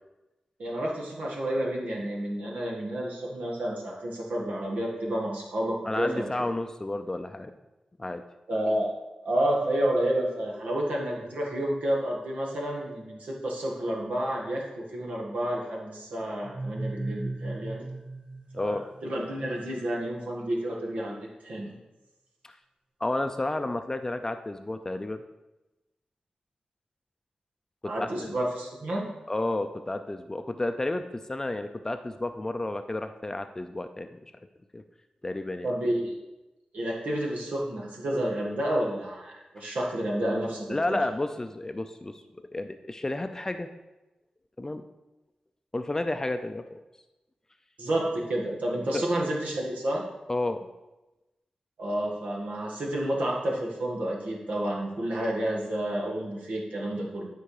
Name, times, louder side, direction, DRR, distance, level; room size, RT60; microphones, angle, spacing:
voice 1, 0.6-6.3 8.5-8.9 9.2-17.9 18.5-21.7 27.8-29.1 35.6-36.1 36.7-41.0 47.8-50.1 51.8-57.3, right 1 dB, 85° right, -3 dB, 1.7 m, -30 dB
voice 2, 5.8-7.5 8.0-8.2 18.5-18.8 22.4-22.6 23.0-25.2 27.8-28.3 29.3-34.1 34.7-34.8 35.2-35.7 40.7-43.7 44.6-44.8 45.7-46.8 48.9-49.1 50.3-50.7, left 2 dB, 20° left, 8 dB, 0.4 m, -31 dB
sound 1, 16.4-19.3, right 2 dB, 35° right, 0.8 m, -36 dB
11.5 x 4.6 x 4.9 m, 1.0 s
wide cardioid pair, 100°, 2 cm